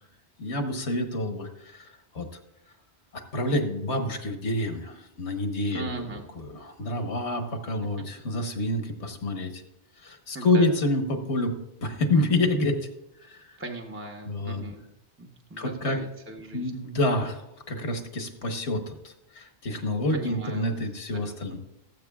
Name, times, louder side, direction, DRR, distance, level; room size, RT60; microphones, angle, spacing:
voice 1, 0.4-2.3 3.1-5.9 6.4-9.6 10.0-11.5 11.8-12.8 13.2-13.5 14.3-14.6 15.6-16.0 16.5-21.6, left 1 dB, 75° left, 5 dB, 1.5 m, -28 dB
voice 2, 5.7-6.3 8.0-8.1 10.3-10.7 13.6-14.9 15.2-16.8 20.1-20.8 21.1-21.6, right 2 dB, 15° right, 1 dB, 0.7 m, -39 dB
19.0 x 7.8 x 2.3 m, 0.85 s
omnidirectional pair, 1.1 m